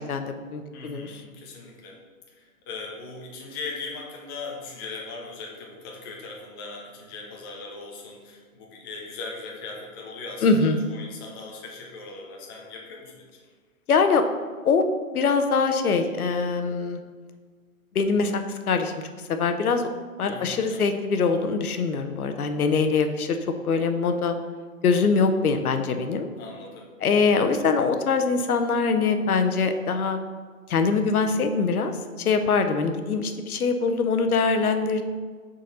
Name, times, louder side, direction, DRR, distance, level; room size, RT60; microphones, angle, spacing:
voice 1, 0.1-1.2 10.4-10.8 13.9-14.2 14.6-14.8 15.1-17.0 17.9-18.9 19.3-19.9 20.2-24.4 24.8-26.3 27.0-30.2 30.7-35.0, left 4 dB, 90° left, 8 dB, 0.8 m, -23 dB
voice 2, 0.7-2.0 2.3-13.3 20.3-21.0 26.4-26.9, left 3 dB, 15° left, -1 dB, 0.6 m, -39 dB
6.5 x 4.1 x 4.1 m, 1.5 s
hypercardioid pair, 150°, 43 cm